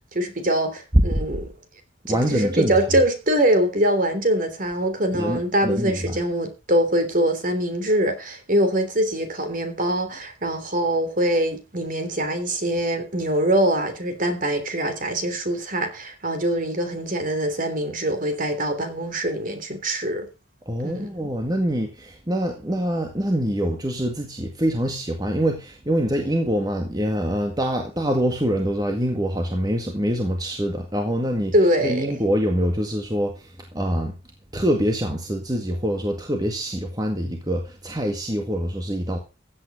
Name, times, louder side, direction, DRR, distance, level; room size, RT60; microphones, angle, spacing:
voice 1, 0.1-1.5 2.1-20.3 20.8-21.1 31.5-32.1, right 1 dB, 45° right, 3.3 m, -23 dB
voice 2, 0.9-1.3 2.1-2.9 5.1-6.2 20.7-34.1 34.5-39.2, equal, 20° right, 1.9 m, -24 dB
15.5 x 8.9 x 5.0 m
head